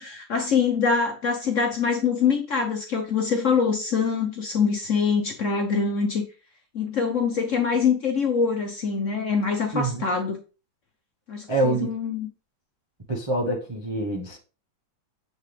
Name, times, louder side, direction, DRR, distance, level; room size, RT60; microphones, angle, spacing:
voice 1, 0.0-6.2 6.7-10.4 11.3-12.3, left 5 dB, 55° left, 0.9 m, -24 dB
voice 2, 9.7-10.0 11.5-11.9 13.1-14.4, right 2 dB, 25° right, 0.6 m, -26 dB
7.8 x 3.7 x 3.3 m
omnidirectional pair, 2.1 m